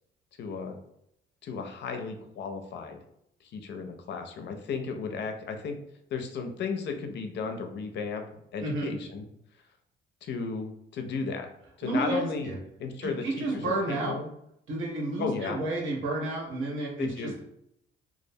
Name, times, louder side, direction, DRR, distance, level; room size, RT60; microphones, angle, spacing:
voice 1, 0.4-0.8 1.4-3.0 3.4-5.8 6.1-8.2 8.5-9.2 10.2-11.5 11.8-12.5 12.8-14.3 15.2-15.6 17.0-17.3, left 5 dB, 60° left, 5 dB, 0.5 m, -34 dB
voice 2, 8.6-8.9 11.8-12.6 13.0-14.2 14.7-17.4, right 2 dB, 80° right, -2 dB, 0.8 m, -31 dB
2.4 x 2.0 x 2.6 m, 0.75 s
cardioid pair, 90°, 20 cm